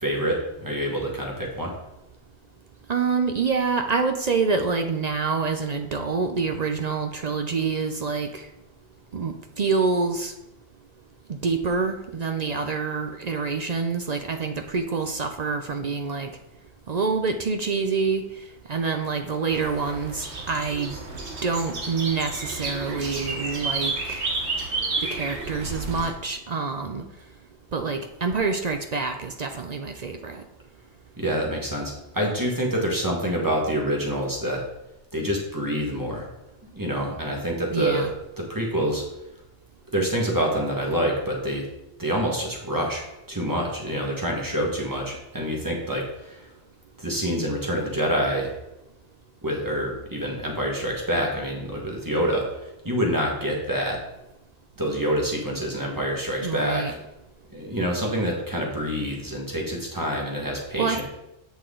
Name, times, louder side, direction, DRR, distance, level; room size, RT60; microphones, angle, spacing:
voice 1, 0.0-1.7 31.2-34.6 35.1-36.3 36.7-38.1 38.4-39.0 39.9-41.6 42.0-46.4 47.0-48.5 49.4-52.5 52.8-54.0 54.8-57.0 57.5-61.0, equal, 15° right, -1 dB, 1.6 m, -26 dB
voice 2, 2.9-8.5 9.1-10.3 11.3-16.3 16.9-18.2 18.7-21.0 21.4-24.2 25.0-27.0 27.7-30.4 37.7-38.1 56.4-56.9 60.7-61.0, right 4 dB, 50° right, 6 dB, 0.5 m, -26 dB
sound 1, 19.5-26.1, right 3 dB, 70° right, 1.5 m, -31 dB
8.1 x 6.2 x 3.8 m, 0.92 s
omnidirectional pair, 1.2 m